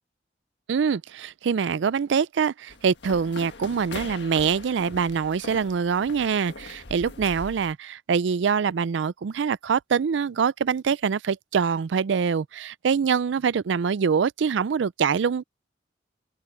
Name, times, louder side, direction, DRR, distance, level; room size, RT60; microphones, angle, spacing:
voice 1, 0.7-15.4, right 6 dB, 85° right, 0.4 m, -24 dB
sound 1, 2.7-7.7, left 3 dB, 75° left, 1.6 m, -41 dB
open air
head